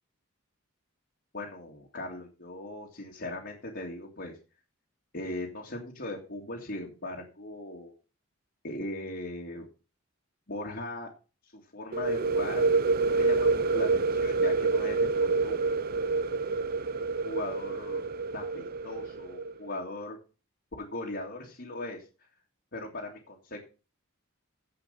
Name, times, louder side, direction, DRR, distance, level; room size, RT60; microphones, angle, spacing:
voice 1, 1.3-4.4 5.1-7.9 8.6-9.6 10.5-11.1 11.4-12.6 13.1-15.8 17.2-18.0 18.3-20.2 20.8-22.0 22.7-23.6, left 2 dB, 50° left, -2 dB, 2.1 m, -39 dB
sound 1, 11.9-19.5, right 4 dB, 45° right, 0.6 m, -27 dB
15.5 x 5.3 x 5.4 m, 0.33 s
head